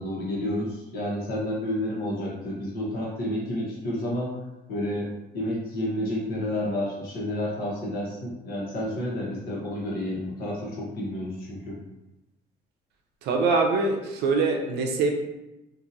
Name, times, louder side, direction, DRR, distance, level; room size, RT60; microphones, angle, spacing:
voice 1, 0.0-4.3 4.7-11.8, left 1 dB, 65° left, -4 dB, 1.1 m, -30 dB
voice 2, 13.2-15.1, right 3 dB, 80° right, 2 dB, 0.6 m, -23 dB
2.8 x 2.7 x 2.6 m, 0.96 s
cardioid pair, 110°, 17 cm